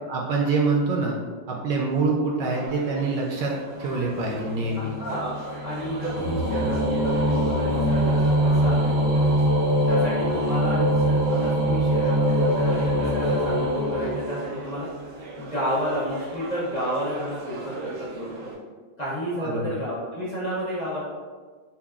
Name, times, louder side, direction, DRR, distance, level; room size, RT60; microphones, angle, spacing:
voice 1, 0.1-1.2 1.5-3.5 3.8-4.9 19.4-19.7, right 3 dB, 75° right, -1 dB, 1.0 m, -25 dB
sound 1, 2.4-18.5, right 3 dB, 90° right, 0.6 m, -41 dB
sound 2, 3.9-14.8, equal, 50° right, 0.8 m, -23 dB
voice 2, 4.7-9.4 9.9-14.9 15.4-18.5 19.0-21.0, equal, 45° left, -9 dB, 0.5 m, -31 dB
5.6 x 2.2 x 2.3 m, 1.4 s
omnidirectional pair, 2.1 m